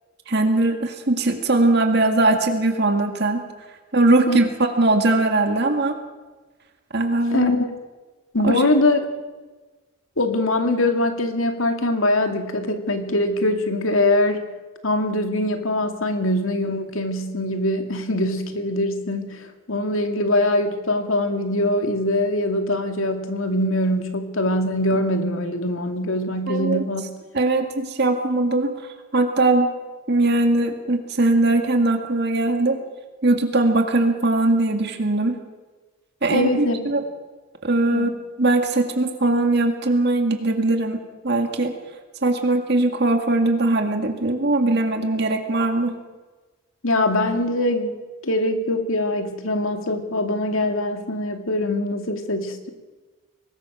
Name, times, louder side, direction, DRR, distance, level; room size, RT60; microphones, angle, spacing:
voice 1, 0.3-3.4 3.9-4.5 4.8-6.0 6.9-7.5 8.4-8.6 26.5-26.8 27.3-28.7 29.1-29.7 30.1-32.8 33.2-35.4 36.2-37.0 37.6-38.1 38.4-41.7 42.2-45.9, right 2 dB, 50° right, 5 dB, 2.1 m, -20 dB
voice 2, 7.3-7.7 8.3-9.0 10.2-14.4 14.8-27.1 36.3-36.8 37.9-38.1 46.8-52.7, left 1 dB, 75° left, 6 dB, 2.4 m, -22 dB
24.0 x 19.5 x 6.3 m, 1.3 s
head